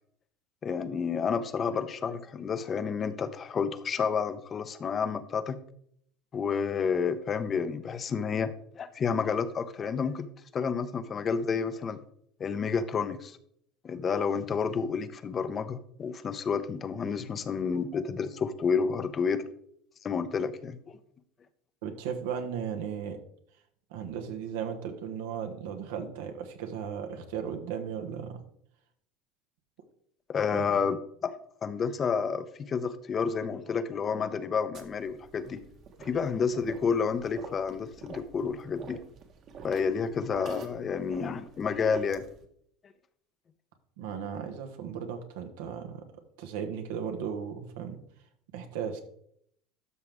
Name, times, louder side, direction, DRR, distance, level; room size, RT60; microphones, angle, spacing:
voice 1, 0.6-5.6 6.3-10.3 10.5-12.0 12.4-13.4 13.8-19.4 20.0-21.0 30.3-31.3 31.6-35.6 36.0-39.0 39.6-42.2, left 6 dB, 35° left, 12 dB, 0.8 m, -30 dB
voice 2, 21.8-23.2 23.9-28.4 30.5-30.7 44.0-46.1 46.4-48.0 48.5-49.0, right 7 dB, 80° right, 6 dB, 1.5 m, -36 dB
sound 1, 34.7-42.4, right 5 dB, 50° right, 1.6 m, -47 dB
12.5 x 6.0 x 3.6 m, 0.68 s
hypercardioid pair, 90°, 0 cm